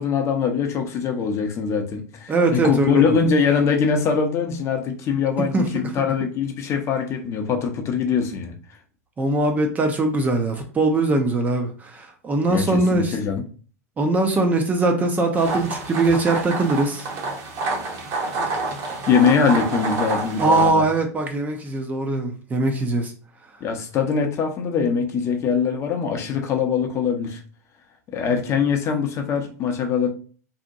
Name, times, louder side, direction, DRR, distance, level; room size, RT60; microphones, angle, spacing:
voice 1, 0.0-8.5 12.5-13.4 19.0-20.8 23.6-27.4 28.1-30.1, left 6 dB, 30° left, 0.6 m, -22 dB
voice 2, 2.3-3.2 5.4-5.9 9.2-13.2 14.0-17.1 20.4-23.1, right 2 dB, 20° right, 0.4 m, -21 dB
sound 1, 15.4-20.7, right 3 dB, 40° right, 0.8 m, -28 dB
2.7 x 2.1 x 2.6 m
hypercardioid pair, 105°, 9 cm